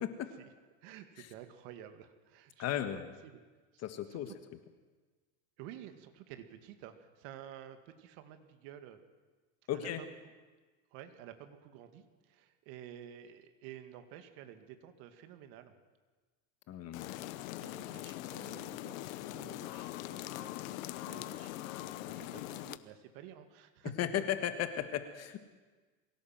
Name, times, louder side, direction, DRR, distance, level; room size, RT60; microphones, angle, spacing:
voice 1, 0.8-2.7 3.2-3.4 3.7-3.8 4.1-4.4 5.6-9.0 9.7-10.3 10.9-15.7 16.9-23.9, right 11 dB, 60° right, 8 dB, 2.2 m, -52 dB
voice 2, 2.6-3.0 3.8-4.3 9.7-10.0 16.7-17.1 24.0-25.4, left 11 dB, 40° left, 9 dB, 1.5 m, -35 dB
sound 1, 16.9-22.8, left 16 dB, 80° left, 1.1 m, -42 dB
23.0 x 16.5 x 7.7 m, 1.4 s
supercardioid pair, 140°, 40 cm